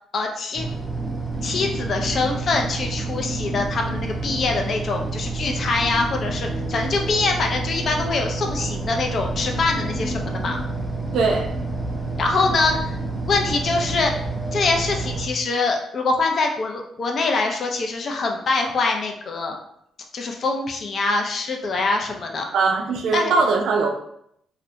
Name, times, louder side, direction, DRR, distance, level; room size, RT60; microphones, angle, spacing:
voice 1, 0.1-0.7 1.4-10.6 12.2-12.9 13.2-14.1 14.5-19.6 20.1-22.5 23.1-23.3, left 3 dB, 50° left, 2 dB, 0.4 m, -24 dB
sound 1, 0.5-15.3, right 3 dB, 5° right, 0.5 m, -28 dB
voice 2, 11.1-11.5 22.5-23.9, right 4 dB, 75° right, 2 dB, 0.3 m, -20 dB
2.5 x 2.1 x 2.7 m, 0.73 s
cardioid pair, 90°, 0 cm